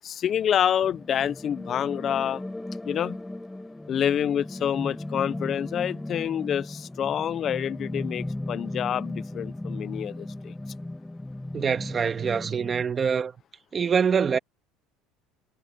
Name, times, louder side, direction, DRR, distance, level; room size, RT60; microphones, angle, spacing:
voice 1, 0.0-2.4 2.9-3.2 3.9-10.5, left 9 dB, 40° left, 0.5 m, -27 dB
sound 1, 0.8-12.8, left 1 dB, 5° left, 6.1 m, -36 dB
voice 2, 11.5-13.3 13.7-14.4, right 6 dB, 30° right, 1.7 m, -24 dB
supercardioid pair, 115°, 0 cm